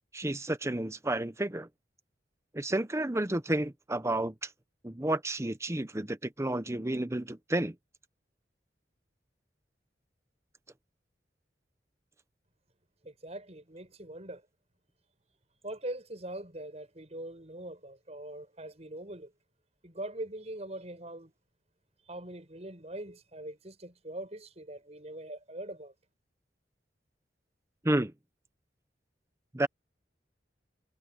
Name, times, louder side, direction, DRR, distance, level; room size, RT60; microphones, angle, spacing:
voice 1, 0.1-1.7 2.5-4.5 4.8-7.7 27.8-28.1 29.5-29.7, right 1 dB, 15° right, 0.9 m, -31 dB
voice 2, 13.0-14.4 15.6-19.3 19.8-21.3 22.1-25.9, right 1 dB, 40° right, 7.3 m, -42 dB
head